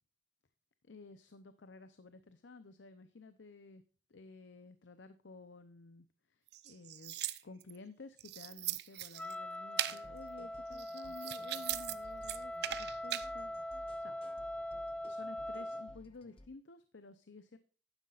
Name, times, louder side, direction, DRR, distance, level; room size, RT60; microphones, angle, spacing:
voice 1, 0.8-3.8 4.1-7.2 7.4-14.2 15.0-17.6, left 3 dB, 85° left, 11 dB, 0.7 m, -54 dB
sound 1, 6.5-7.8 8.2-9.3 9.8-10.0 10.7-11.9 12.2-13.3, right 13 dB, 65° right, 0.6 m, -39 dB
Wind instrument woodwind instrument, 9.2-16.0, left 1 dB, 5° left, 0.5 m, -42 dB
sound 2, 9.8-16.5, left 1 dB, 30° left, 0.9 m, -58 dB
11.5 x 9.8 x 2.5 m, 0.40 s
head